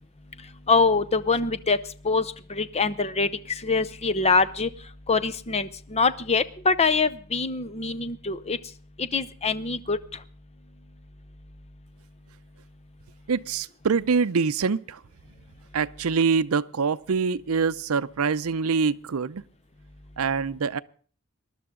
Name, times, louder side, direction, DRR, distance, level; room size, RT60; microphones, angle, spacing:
voice 1, 0.7-1.8 2.0-4.7 5.1-8.6 9.0-10.0, left 4 dB, 30° left, 0.7 m, -24 dB
voice 2, 13.3-15.0 15.7-19.4 20.2-20.8, right 5 dB, 70° right, 0.6 m, -25 dB
20.5 x 12.0 x 3.8 m
head